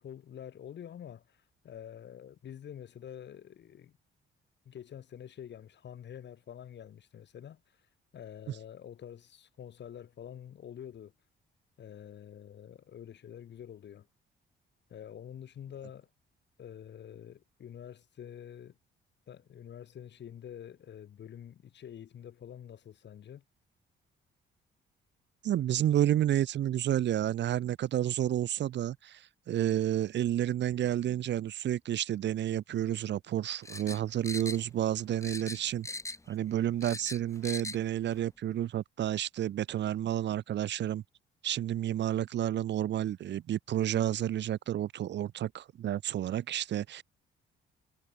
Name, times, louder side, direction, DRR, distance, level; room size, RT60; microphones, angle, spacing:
voice 1, 0.0-3.9 4.6-7.6 8.1-11.1 11.8-14.1 14.9-16.1 16.6-18.8 19.3-23.4, left 9 dB, 60° left, 4.4 m, -47 dB
voice 2, 25.4-35.9 36.3-41.0 41.4-47.0, right 11 dB, 65° right, 0.8 m, -30 dB
sound 1, 33.6-34.9 35.2-36.3 36.6-37.8 38.1-38.2, left 2 dB, 15° left, 1.8 m, -40 dB
cardioid pair, 90°, 20 cm